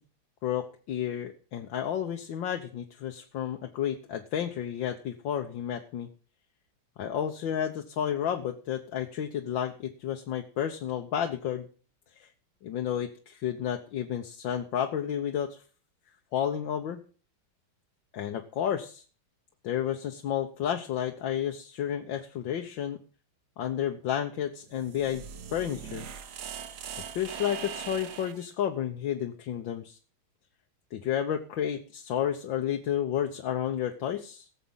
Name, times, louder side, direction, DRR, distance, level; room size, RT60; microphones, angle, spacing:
voice 1, 0.4-6.1 7.0-11.7 12.2-12.3 12.6-15.6 16.3-17.0 18.1-19.0 19.6-23.0 23.6-25.3 25.5-26.1 27.1-30.0 30.9-34.5, left 9 dB, 70° left, 4 dB, 1.7 m, -31 dB
sound 1, 24.6-28.5, right 7 dB, 55° right, 1.4 m, -41 dB
18.0 x 7.6 x 5.6 m, 0.40 s
omnidirectional pair, 2.3 m